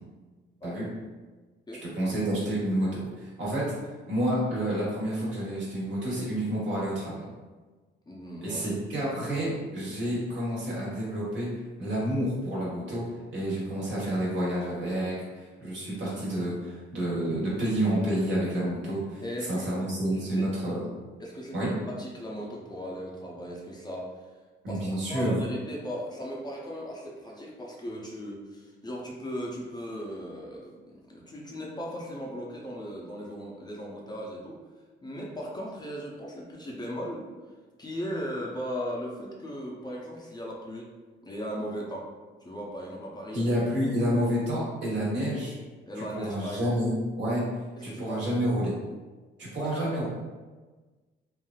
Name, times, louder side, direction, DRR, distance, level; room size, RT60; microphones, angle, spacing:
voice 1, 1.8-3.7 4.1-7.2 8.4-11.5 11.8-13.0 13.3-19.2 19.5-20.8 21.5-21.7 24.6-25.3 43.3-45.6 45.9-47.4 47.8-48.7 49.4-50.1, right 1 dB, 65° right, -6 dB, 1.3 m, -29 dB
voice 2, 8.1-8.6 19.2-19.9 20.3-20.5 21.2-24.1 24.7-34.6 35.0-37.3 37.8-40.9 41.2-42.1 42.4-43.4 44.0-44.3 45.9-46.8 47.8-48.3 49.6-50.1, equal, 20° left, -3 dB, 0.6 m, -37 dB
3.1 x 2.5 x 2.3 m, 1.3 s
cardioid pair, 90°, 20 cm